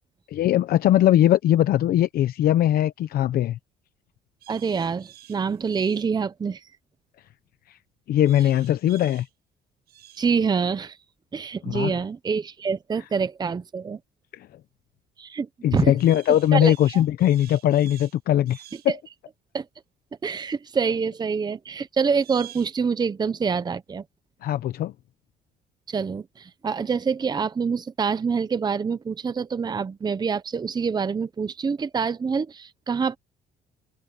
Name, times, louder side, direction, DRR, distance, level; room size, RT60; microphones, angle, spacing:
voice 1, 0.3-3.6 7.7-7.8 8.1-9.3 11.6-11.9 14.3-14.5 15.6-19.0 24.4-24.9, left 12 dB, 65° left, 0.8 m, -20 dB
sound 1, 4.4-6.1 8.2-9.3 9.9-10.3 16.0-18.2 18.5-18.9 22.2-22.8, right 13 dB, 70° right, 6.1 m, -48 dB
voice 2, 4.5-6.6 10.2-11.0 11.3-14.0 15.2-15.9 16.5-17.0 19.5-19.7 20.2-24.0 25.9-33.2, right 5 dB, 25° right, 0.8 m, -26 dB
cardioid pair, 110°, 17 cm